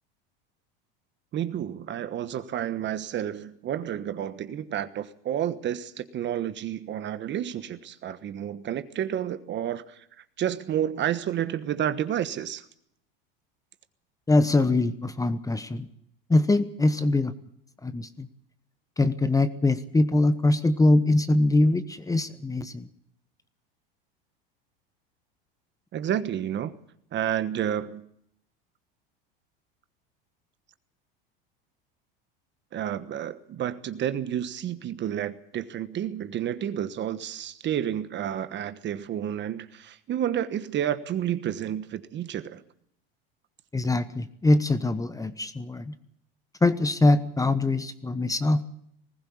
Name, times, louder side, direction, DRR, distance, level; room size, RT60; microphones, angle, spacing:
voice 1, 1.3-10.0 10.4-12.6 25.9-26.7 27.1-28.1 32.7-42.6, right 10 dB, 40° right, 12 dB, 1.2 m, -30 dB
voice 2, 14.3-15.9 16.3-17.3 17.8-18.3 19.0-22.9 43.7-45.9 46.6-48.6, left 2 dB, 10° left, 12 dB, 1.1 m, -23 dB
20.0 x 15.5 x 8.6 m, 0.72 s
hypercardioid pair, 100°, 29 cm